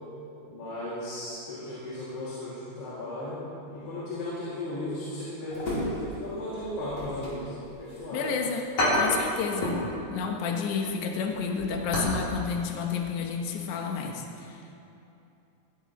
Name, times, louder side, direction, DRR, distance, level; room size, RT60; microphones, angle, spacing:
voice 1, 0.5-3.4 3.7-7.5 7.8-8.3, left 1 dB, 85° left, -11 dB, 4.6 m, -36 dB
sound 1, 5.5-6.3 6.6-8.0 8.3-8.4 8.8-9.9 10.2-10.4 10.8-12.2 12.5-12.6 13.1-13.3 13.6-13.7, left 1 dB, 45° left, 4.6 m, -29 dB
voice 2, 8.1-8.7 8.9-9.8 10.1-14.6, left 6 dB, 65° left, 2 dB, 2.2 m, -30 dB
16.5 x 15.5 x 3.1 m, 2.8 s
omnidirectional pair, 4.5 m